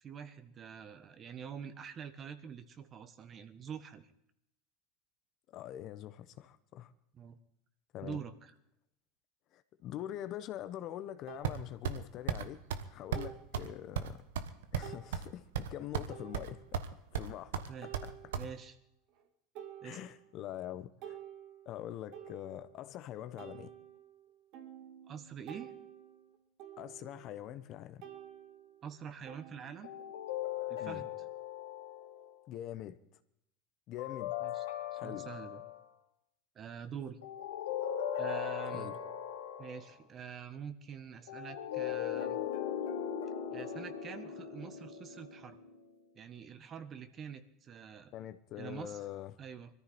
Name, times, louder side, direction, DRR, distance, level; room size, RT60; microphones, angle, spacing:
voice 1, 0.0-4.1 7.1-7.4 8.0-8.5 17.7-17.9 18.3-18.7 19.8-20.0 25.1-25.7 28.8-29.9 30.7-31.1 34.4-34.6 34.9-35.6 36.5-37.2 38.1-38.9 39.6-42.4 43.5-45.6 46.1-48.1 48.6-49.0 49.4-49.7, right 7 dB, 35° right, 1.6 m, -46 dB
voice 2, 5.5-6.9 7.9-8.2 9.5-12.6 12.9-14.2 14.7-16.8 17.1-18.3 19.8-21.2 21.6-23.7 26.8-28.0 30.8-31.0 32.5-33.0 33.9-34.3 35.0-35.3 38.7-39.0 48.1-49.3, left 12 dB, 50° left, 1.1 m, -44 dB
sound 1, 10.4-10.5 11.3-11.5 13.1-13.5 14.1-14.2 14.8-15.1 16.1-16.7 17.8-18.7 19.1-19.3 19.5-20.4 20.8-22.9 23.4-27.7 28.0-30.3, right 10 dB, 60° right, 2.4 m, -51 dB
sound 2, 11.4-12.0 12.3-12.4 12.7-12.9 13.1-13.3 13.5-13.7 14.0-15.3 15.5-16.1 16.3-16.9 17.1-18.5, right 8 dB, 85° right, 1.2 m, -35 dB
sound 3, 29.8-32.3 34.0-35.8 37.2-39.9 41.3-45.8, left 9 dB, 85° left, 2.7 m, -39 dB
21.5 x 14.0 x 4.4 m
hypercardioid pair, 100°, 0 cm